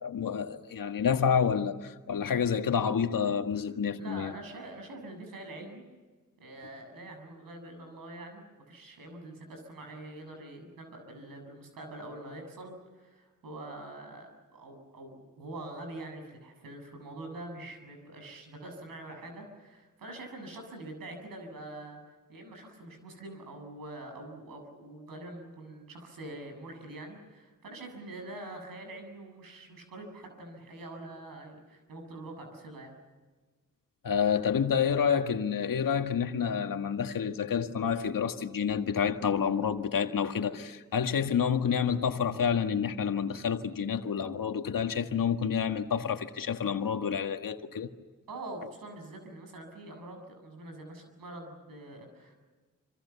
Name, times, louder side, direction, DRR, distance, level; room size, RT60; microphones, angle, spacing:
voice 1, 0.0-4.3 34.0-47.9, left 7 dB, 75° left, 1.8 m, -29 dB
voice 2, 3.9-5.8 6.4-22.0 22.3-33.0 48.3-52.3, right 2 dB, 90° right, 7.5 m, -45 dB
27.0 x 27.0 x 7.1 m
cardioid pair, 55°, 33 cm